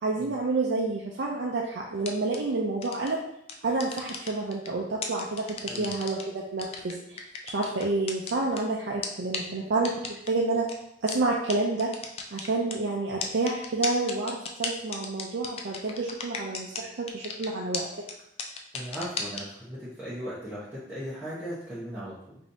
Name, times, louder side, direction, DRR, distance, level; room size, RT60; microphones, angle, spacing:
voice 1, 0.0-3.2 3.6-10.7 11.0-11.9 12.3-17.9, right 3 dB, 80° right, -2 dB, 0.5 m, -29 dB
sound 1, 2.0-2.4 2.8-3.1 3.5-4.7 5.0-6.2 6.6-8.6 9.0-9.1 9.3-9.4 9.8-10.3 10.7-10.8 11.1-11.2 11.5-11.6 11.8-12.7 13.2-16.8 17.1-17.5 17.7-17.8 18.1-18.2 18.4-19.4, left 5 dB, 35° left, 0.3 m, -34 dB
voice 2, 18.7-22.4, equal, 10° right, -13 dB, 0.9 m, -37 dB
5.0 x 2.7 x 2.7 m, 0.76 s
head